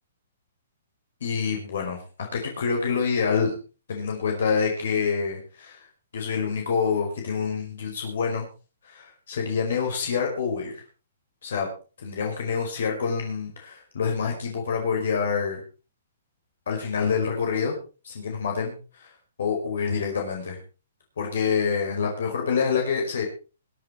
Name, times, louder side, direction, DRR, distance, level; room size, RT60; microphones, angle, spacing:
voice 1, 1.2-2.0 2.3-3.5 3.9-5.9 6.1-8.5 8.8-10.8 11.4-11.7 12.0-15.6 16.7-17.8 18.0-19.1 19.4-20.6 21.2-23.2, left 6 dB, 70° left, 2 dB, 5.0 m, -27 dB
22.0 x 9.2 x 4.5 m, 0.35 s
hypercardioid pair, 155°, 0 cm